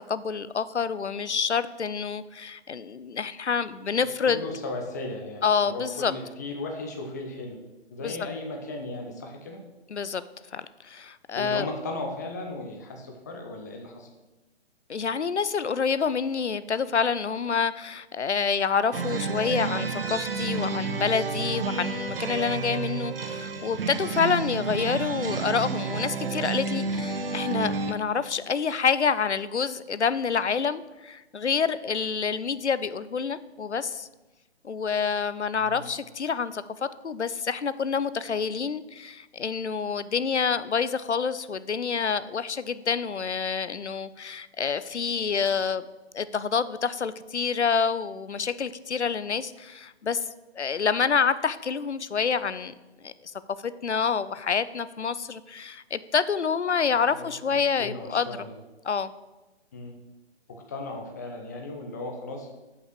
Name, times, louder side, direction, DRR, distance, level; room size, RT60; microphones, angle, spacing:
voice 1, 0.1-4.4 5.4-6.1 8.0-8.2 9.9-10.2 10.5-11.7 14.9-34.1 34.6-45.8 46.1-50.2 50.5-52.7 53.0-53.3 53.6-58.3 58.8-59.1, left 6 dB, 90° left, 15 dB, 0.5 m, -27 dB
voice 2, 4.0-7.6 7.9-9.6 11.3-14.1 35.5-35.9 57.0-57.3 57.8-58.5 59.7-60.0 60.5-62.5, left 2 dB, 15° left, 2 dB, 0.6 m, -36 dB
sound 1, 18.9-27.9, right 4 dB, 55° right, 0.7 m, -30 dB
5.9 x 5.5 x 6.2 m, 1.1 s
figure-of-eight pair, 135°, 34 cm